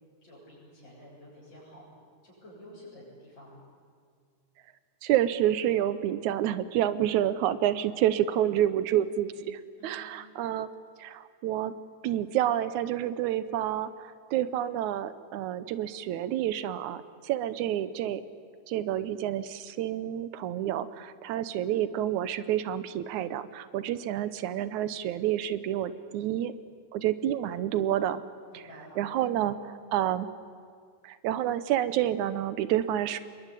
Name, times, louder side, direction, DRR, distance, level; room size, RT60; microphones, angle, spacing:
voice 1, 0.2-1.9 2.2-3.6 9.8-10.0 28.5-29.0, equal, 20° left, -8 dB, 8.0 m, -50 dB
voice 2, 5.0-10.7 11.0-11.7 12.0-18.2 18.7-26.5 26.9-28.2 28.5-28.6 29.0-30.3 31.0-33.2, right 11 dB, 85° right, 14 dB, 2.2 m, -29 dB
26.5 x 21.5 x 9.9 m, 2.1 s
omnidirectional pair, 3.3 m